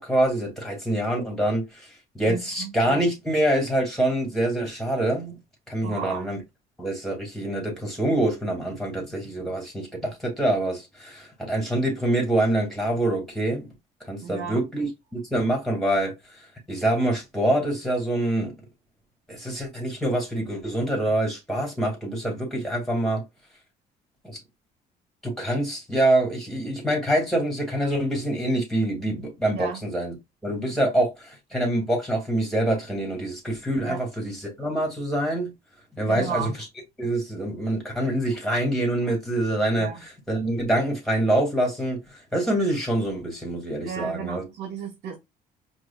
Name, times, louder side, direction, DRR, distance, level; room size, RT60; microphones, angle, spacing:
voice 1, 0.0-1.9 2.1-5.4 5.7-6.4 6.8-13.7 14.1-16.1 16.7-18.5 19.3-23.2 24.2-24.4 25.2-30.1 30.4-35.5 36.0-36.5 37.0-39.9 40.3-44.4, right 1 dB, ahead, 2.3 m, -25 dB
voice 2, 2.2-2.7 5.8-6.3 14.2-14.6 29.5-29.8 33.8-34.0 36.1-36.5 39.8-40.0 43.9-45.2, right 7 dB, 70° right, 1.0 m, -33 dB
4.7 x 2.6 x 2.5 m
cardioid pair, 110°, 17 cm